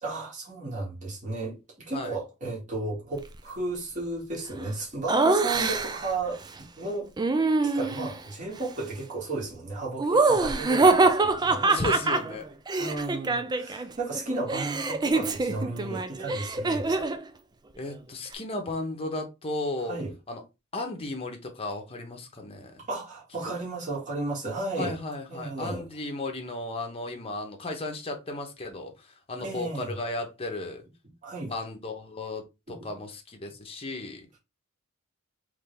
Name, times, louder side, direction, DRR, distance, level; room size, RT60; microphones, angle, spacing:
voice 1, 0.0-6.4 6.8-7.1 7.6-11.7 12.8-17.0 19.8-20.1 22.9-25.0 25.3-25.8 29.4-29.9 31.2-31.5, right 3 dB, 35° right, 1.9 m, -34 dB
Laughter, 5.1-6.1 7.2-8.2 10.0-13.9 14.1-17.2, right 3 dB, 20° right, 0.4 m, -24 dB
voice 2, 11.7-12.4 17.8-20.0 20.3-20.4 20.7-22.9 24.8-30.8 31.5-32.4 32.7-34.3, left 2 dB, 25° left, 0.9 m, -34 dB
3.8 x 3.3 x 3.3 m
head